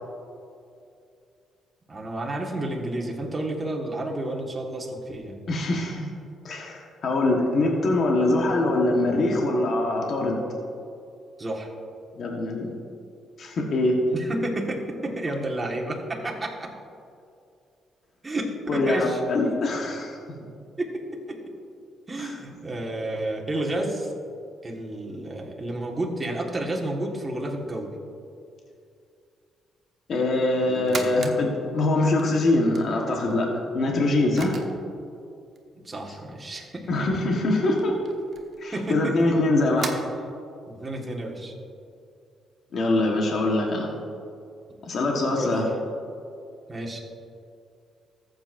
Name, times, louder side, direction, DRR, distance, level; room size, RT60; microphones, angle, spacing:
voice 1, 1.9-5.4 11.4-11.7 14.1-16.7 18.2-19.2 20.8-21.0 21.3-21.4 22.1-24.1 24.6-27.9 30.7-31.1 35.8-36.8 38.7-39.3 40.7-41.5 44.7-44.8 45.4-45.7 46.7-47.0, right 1 dB, 25° right, -1 dB, 1.6 m, -31 dB
voice 2, 5.5-6.1 6.4-10.4 12.2-12.7 13.4-14.0 18.7-20.2 22.2-22.3 30.1-33.5 33.7-34.6 36.9-37.9 38.6-39.9 42.7-43.9 44.8-45.6, left 2 dB, 55° left, 0 dB, 1.3 m, -23 dB
sound 1, 30.7-31.4 31.8-33.3 34.1-34.2 34.3-34.8 35.6-35.7 36.9-37.0 37.3-37.4 37.7-39.9, right 5 dB, 50° right, 1.0 m, -37 dB
14.0 x 7.9 x 2.6 m, 2.5 s
cardioid pair, 90°, 0 cm